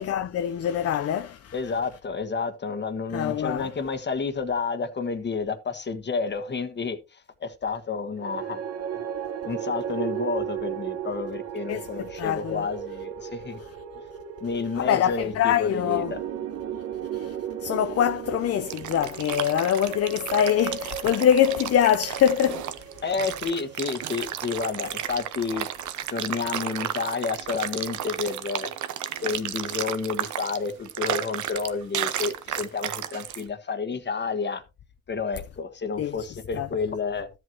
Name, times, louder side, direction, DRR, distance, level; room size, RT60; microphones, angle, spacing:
voice 1, 0.0-1.6 3.1-3.7 11.7-12.7 13.6-13.7 14.7-16.1 17.1-22.7 36.0-36.3 36.5-36.7, left 10 dB, 50° left, 0.6 m, -24 dB
voice 2, 1.5-8.6 9.4-13.6 14.4-16.2 23.0-25.7 26.1-28.7 29.2-34.6 35.1-37.3, left 5 dB, 35° left, 1.5 m, -30 dB
sound 1, 8.1-24.4, right 9 dB, 55° right, 1.1 m, -36 dB
sound 2, 18.4-33.4, right 11 dB, 75° right, 0.9 m, -33 dB
13.5 x 7.8 x 2.8 m
cardioid pair, 90°, 30 cm